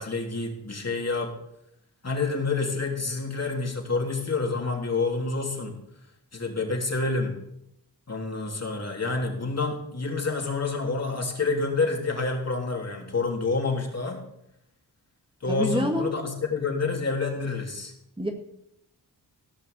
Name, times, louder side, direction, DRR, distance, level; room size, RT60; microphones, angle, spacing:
voice 1, 0.0-1.3 2.0-5.8 6.3-7.4 8.1-14.2 15.4-17.9, left 3 dB, 40° left, 1 dB, 3.3 m, -28 dB
voice 2, 15.5-16.1 18.2-18.3, equal, 10° right, 2 dB, 1.9 m, -26 dB
17.0 x 5.8 x 8.1 m, 0.79 s
cardioid pair, 65°, 41 cm